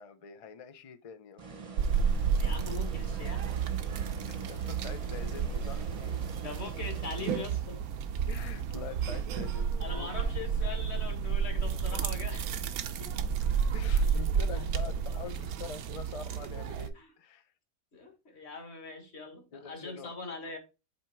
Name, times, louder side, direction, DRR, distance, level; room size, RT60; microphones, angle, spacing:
voice 1, 0.0-1.4 4.3-6.2 8.3-10.3 13.7-17.5 19.5-20.2, left 6 dB, 70° left, 0.3 m, -45 dB
sound 1, 1.4-8.0, right 4 dB, 30° right, 0.7 m, -45 dB
sound 2, 1.8-16.9, right 6 dB, 85° right, 1.2 m, -31 dB
voice 2, 2.4-3.6 6.4-7.8 9.1-9.2 9.8-12.5 13.0-13.1 14.6-15.2 17.0-17.1 17.9-20.6, left 4 dB, 50° left, 1.8 m, -42 dB
8.0 x 3.4 x 4.4 m
omnidirectional pair, 1.5 m